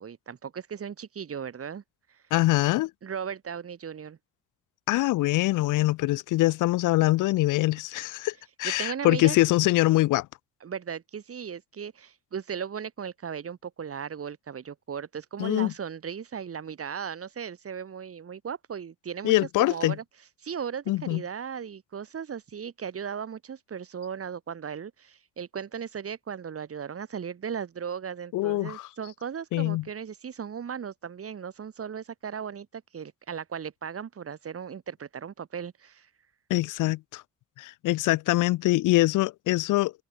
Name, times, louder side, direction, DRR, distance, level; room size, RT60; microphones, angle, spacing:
voice 1, 0.0-1.8 3.0-4.2 8.6-9.4 10.6-19.3 19.6-20.0 20.4-36.1, right 7 dB, 50° right, 6.1 m, -37 dB
voice 2, 2.3-2.9 4.9-8.3 8.6-10.3 15.4-15.7 19.2-20.0 20.9-21.2 28.3-28.9 29.5-29.8 36.5-37.2 37.6-39.9, left 18 dB, 90° left, 0.9 m, -24 dB
cardioid pair, 90°, 30 cm